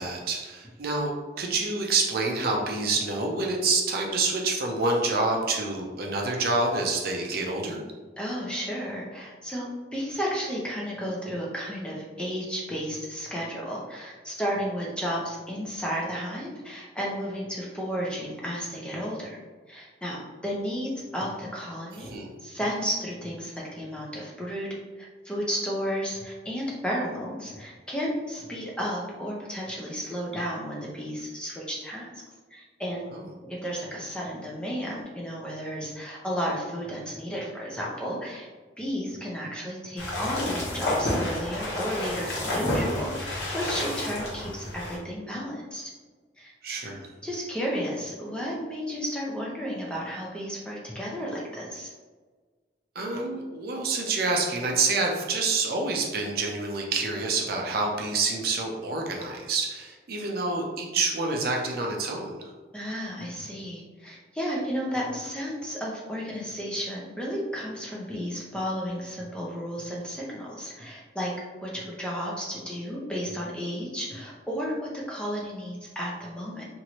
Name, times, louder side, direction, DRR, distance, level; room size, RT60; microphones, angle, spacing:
voice 1, 0.0-7.8 22.0-22.3 33.1-33.3 46.6-47.1 53.0-62.5, right 3 dB, 55° right, 0 dB, 0.5 m, -27 dB
voice 2, 8.2-19.4 19.7-22.1 22.4-24.7 25.0-32.1 32.5-33.0 33.5-38.5 38.8-45.9 46.4-46.5 46.9-47.0 47.2-51.9 62.7-71.3 71.6-76.6, equal, 5° left, -4 dB, 0.5 m, -33 dB
sound 1, 40.0-45.0, left 1 dB, 70° left, 1.0 m, -30 dB
3.0 x 2.6 x 2.9 m, 1.4 s
head